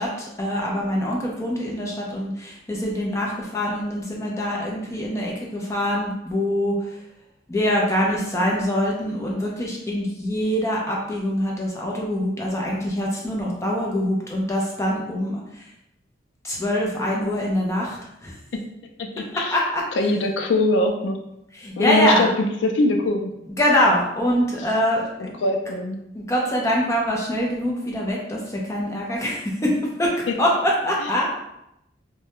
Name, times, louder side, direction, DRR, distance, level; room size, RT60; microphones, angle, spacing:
voice 1, 0.0-6.8 7.5-15.7 16.4-18.3 19.3-19.8 21.5-22.3 23.6-25.3 26.1-29.7 30.0-31.3, equal, 15° left, -3 dB, 0.5 m, -24 dB
voice 2, 19.2-19.6 20.0-21.2 21.8-22.3 22.6-23.3 25.2-26.0 30.3-30.4, left 2 dB, 70° left, 4 dB, 0.4 m, -22 dB
2.3 x 2.1 x 2.9 m, 0.82 s
head